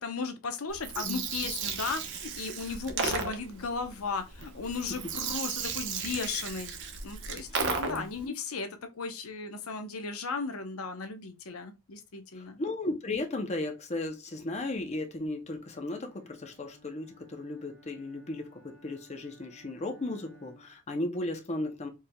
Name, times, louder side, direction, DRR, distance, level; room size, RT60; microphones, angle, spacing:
voice 1, 0.0-6.7 7.0-12.6, left 4 dB, 90° left, 0.7 m, -36 dB
Gurgling, 0.7-8.2, right 5 dB, 60° right, 0.8 m, -35 dB
voice 2, 12.4-21.9, left 2 dB, 30° left, 0.7 m, -35 dB
Bowed string instrument, 15.6-20.9, equal, 30° right, 2.4 m, -59 dB
4.4 x 3.4 x 2.2 m
head